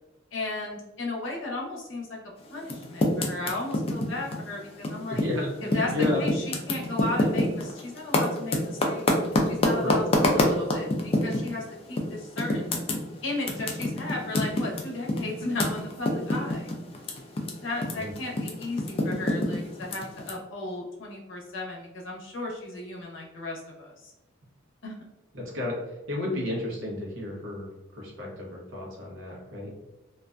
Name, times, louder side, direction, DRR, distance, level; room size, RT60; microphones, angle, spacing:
voice 1, 0.3-2.1 2.5-5.2 5.6-5.9 6.2-9.0 9.4-12.7 13.2-16.7 17.6-23.9 24.8-24.9, left 2 dB, 75° left, -1 dB, 0.7 m, -35 dB
Typing, 2.6-5.4 5.7-11.5 12.0-12.1 12.4-17.5 17.8-20.3, left 1 dB, 30° left, 0.3 m, -26 dB
voice 2, 5.1-6.2 9.8-9.9 17.9-18.1 25.3-29.7, left 2 dB, 75° right, -2 dB, 0.7 m, -32 dB
2.4 x 2.1 x 2.4 m, 1.0 s
head